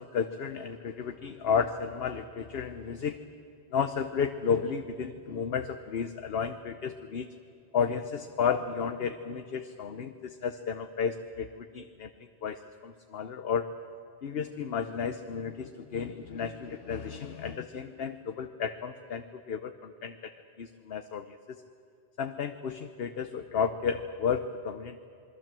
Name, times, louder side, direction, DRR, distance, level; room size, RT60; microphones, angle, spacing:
voice 1, 0.0-3.2 3.7-7.3 7.7-12.1 12.4-13.7 14.2-20.3 20.6-21.6 22.2-25.1, left 6 dB, 65° left, 9 dB, 1.1 m, -32 dB
27.5 x 21.5 x 7.6 m, 2.5 s
omnidirectional pair, 1.1 m